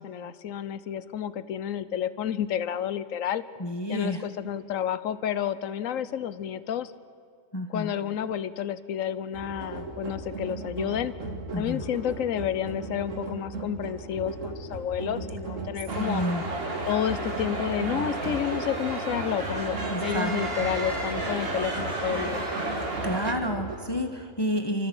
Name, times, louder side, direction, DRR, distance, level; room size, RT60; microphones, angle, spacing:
voice 1, 0.0-3.4 3.9-6.9 7.7-11.2 11.6-16.2 16.9-22.4, left 9 dB, 90° left, 14 dB, 1.2 m, -30 dB
voice 2, 3.6-4.2 7.5-7.9 11.5-11.8 15.9-16.4 19.9-20.3 23.0-24.9, equal, 20° left, 5 dB, 1.1 m, -29 dB
sound 1, 9.3-23.8, right 3 dB, 75° right, 2.5 m, -37 dB
sound 2, 15.9-23.3, right 2 dB, 50° right, 2.2 m, -32 dB
29.0 x 13.5 x 7.9 m, 2.2 s
omnidirectional pair, 1.3 m